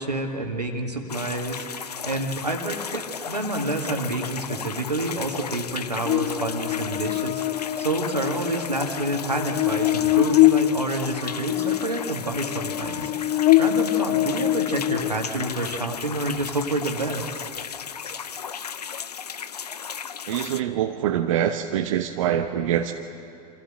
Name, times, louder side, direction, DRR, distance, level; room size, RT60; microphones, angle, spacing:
voice 1, 0.0-7.4 7.8-17.5, right 2 dB, 85° right, 3 dB, 2.0 m, -28 dB
sound 1, 1.1-20.6, left 7 dB, 75° left, 0.6 m, -35 dB
Buzz, 6.1-15.5, left 15 dB, 35° left, 0.5 m, -24 dB
voice 2, 20.3-22.9, right 10 dB, 55° right, 7 dB, 0.8 m, -24 dB
26.0 x 14.0 x 7.7 m, 2.7 s
figure-of-eight pair, 90°, 20 cm